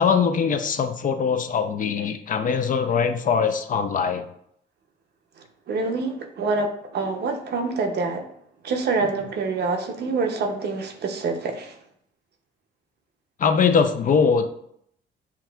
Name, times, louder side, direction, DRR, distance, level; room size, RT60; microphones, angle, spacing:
voice 1, 0.0-4.2 13.4-14.5, left 6 dB, 45° left, 8 dB, 0.4 m, -22 dB
voice 2, 5.7-8.2 8.6-11.7, right 4 dB, 55° right, 5 dB, 0.6 m, -26 dB
5.8 x 2.4 x 2.3 m, 0.70 s
cardioid pair, 90°, 20 cm